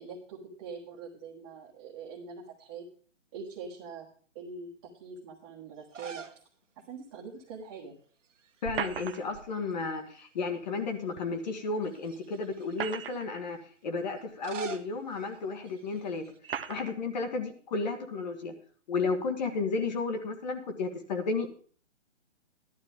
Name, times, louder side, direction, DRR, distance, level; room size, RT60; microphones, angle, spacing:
voice 1, 0.0-2.9 3.3-4.1 4.3-6.2 6.9-7.9, right 5 dB, 20° right, -2 dB, 1.4 m, -43 dB
sound 1, 5.8-6.4 6.8-6.9 8.2-8.7 9.0-10.2 10.8-10.9 11.8-12.9 14.2-16.4, right 6 dB, 80° right, 1.5 m, -46 dB
voice 2, 8.6-13.6 13.8-16.2 16.7-18.5 18.9-21.5, left 4 dB, 35° left, 5 dB, 1.5 m, -33 dB
sound 2, 8.6-9.5 11.2-11.3 12.5-13.4 14.3-14.4 15.4-15.5 16.4-16.9, right 8 dB, 50° right, 0.9 m, -37 dB
13.5 x 11.5 x 3.6 m, 0.43 s
hypercardioid pair, 160°, 37 cm